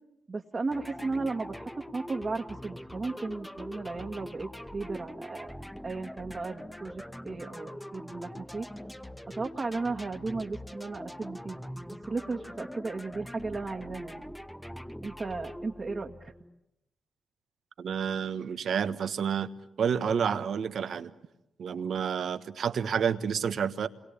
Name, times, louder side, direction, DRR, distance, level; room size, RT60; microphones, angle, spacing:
voice 1, 0.3-5.5 5.8-8.7 9.3-11.6 12.1-14.3 15.0-16.3, right 3 dB, 40° right, 1.9 m, -35 dB
sound 1, 0.7-16.6, equal, 5° left, 1.0 m, -43 dB
voice 2, 17.8-19.5 19.8-21.1 21.6-23.9, right 7 dB, 70° right, 1.3 m, -29 dB
28.5 x 22.0 x 8.6 m
hypercardioid pair, 40°, 0 cm